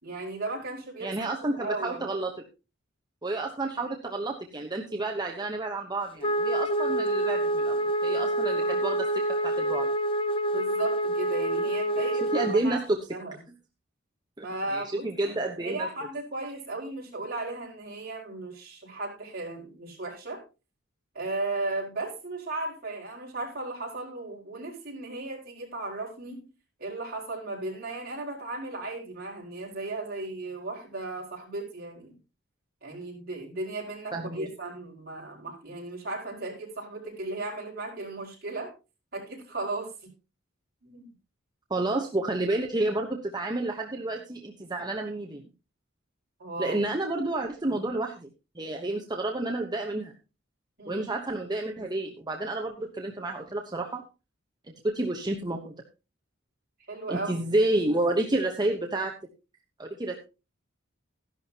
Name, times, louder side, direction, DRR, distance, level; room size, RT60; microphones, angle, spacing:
voice 1, 0.0-1.3 1.6-2.0 8.2-8.3 8.6-8.8 10.5-12.8 13.1-13.4 14.4-20.4 21.1-26.4 26.8-32.2 32.8-38.7 39.1-39.9 40.8-41.1 46.4-46.8 50.8-51.1 56.9-57.4, right 2 dB, 50° right, -2 dB, 5.0 m, -36 dB
voice 2, 1.0-2.3 3.2-9.1 9.4-9.9 12.0-13.0 14.4-15.9 34.1-34.5 41.7-45.4 46.6-48.3 48.5-50.1 50.9-54.0 54.8-55.7 57.1-59.1 59.8-60.1, right 2 dB, 20° right, 1 dB, 1.0 m, -30 dB
Wind instrument woodwind instrument, 6.2-12.6, right 1 dB, 25° left, 0.5 m, -27 dB
14.0 x 11.5 x 2.9 m, 0.30 s
head